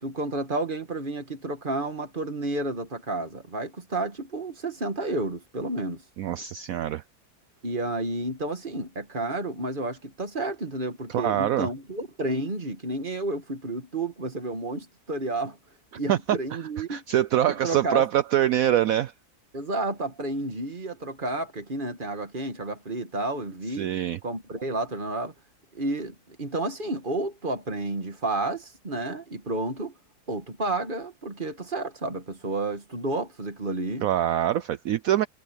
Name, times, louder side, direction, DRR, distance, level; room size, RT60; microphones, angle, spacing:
voice 1, 0.0-6.0 7.6-15.6 16.0-17.0 17.6-18.1 19.5-23.9 24.2-25.3 25.7-29.9 30.3-34.1, right 2 dB, 30° right, 2.1 m, -31 dB
voice 2, 6.2-7.0 11.1-11.7 16.1-16.2 16.8-19.1 23.8-24.2 34.0-35.3, right 12 dB, 65° right, 1.0 m, -24 dB
omnidirectional pair, 1.7 m